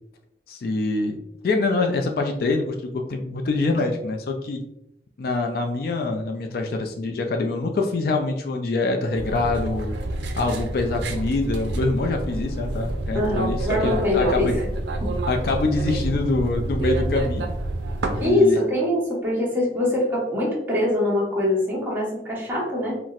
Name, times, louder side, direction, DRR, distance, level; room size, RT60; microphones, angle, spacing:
voice 1, 0.5-1.2 1.4-4.6 5.2-10.0 10.4-14.6 15.3-17.4 18.2-18.6, left 3 dB, 55° left, 3 dB, 0.3 m, -25 dB
sound 1, 9.1-18.3, right 2 dB, 80° right, 0.4 m, -28 dB
voice 2, 13.1-14.6 15.0-15.1 18.2-23.0, left 1 dB, 10° right, -7 dB, 1.1 m, -23 dB
4.0 x 2.0 x 2.4 m, 0.81 s
head